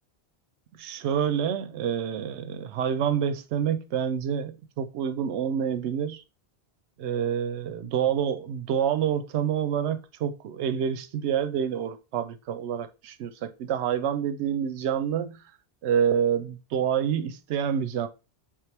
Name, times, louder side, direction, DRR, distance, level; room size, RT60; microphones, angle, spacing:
voice 1, 0.8-6.2 7.0-15.4 15.8-18.1, right 8 dB, 85° right, 0.9 m, -27 dB
4.5 x 3.5 x 3.3 m
omnidirectional pair, 1.1 m